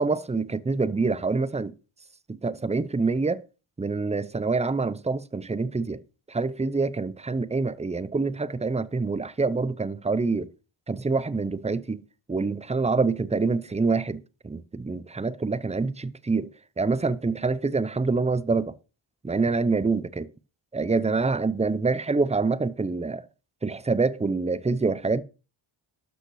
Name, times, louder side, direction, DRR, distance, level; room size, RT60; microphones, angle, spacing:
voice 1, 0.0-1.7 2.3-3.4 3.8-6.0 6.3-10.5 10.9-12.0 12.3-18.8 19.2-20.3 20.7-23.3 23.6-25.2, right 4 dB, 15° right, 0.6 m, -26 dB
13.0 x 5.3 x 6.3 m
wide cardioid pair, 115°, 49 cm